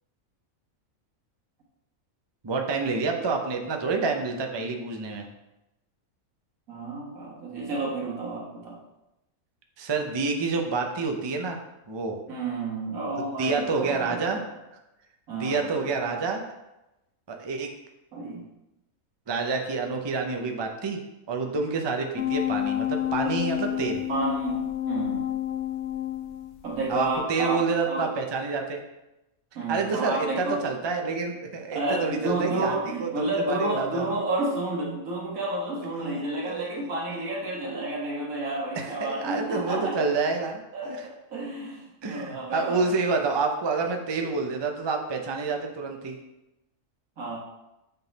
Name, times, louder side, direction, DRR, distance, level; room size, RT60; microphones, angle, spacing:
voice 1, 2.4-5.3 9.8-11.6 11.9-12.2 13.4-14.4 15.3-16.4 17.3-17.7 18.3-18.4 19.3-21.0 21.3-24.0 26.9-28.8 29.7-34.1 36.4-36.8 38.8-41.0 42.0-46.2, right 4 dB, 30° right, 3 dB, 0.5 m, -28 dB
voice 2, 6.7-8.8 12.3-14.4 15.3-15.9 18.1-18.5 24.1-25.3 26.6-28.2 29.6-30.6 31.7-40.1 40.7-42.8 47.2-47.4, right 2 dB, 90° right, -3 dB, 1.9 m, -31 dB
sound 1, 22.2-26.7 27.1-27.2, left 12 dB, 65° left, 0.8 m, -29 dB
7.5 x 3.8 x 4.0 m, 0.95 s
omnidirectional pair, 1.4 m